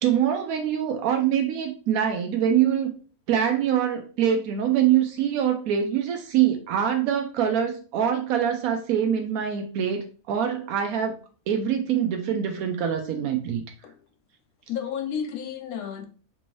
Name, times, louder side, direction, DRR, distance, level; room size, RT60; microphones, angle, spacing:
voice 1, 0.0-2.9 3.3-11.1 11.5-13.6, right 9 dB, 85° right, 1.0 m, -24 dB
voice 2, 14.7-16.1, left 8 dB, 85° left, 1.1 m, -32 dB
3.4 x 2.7 x 3.1 m
omnidirectional pair, 1.5 m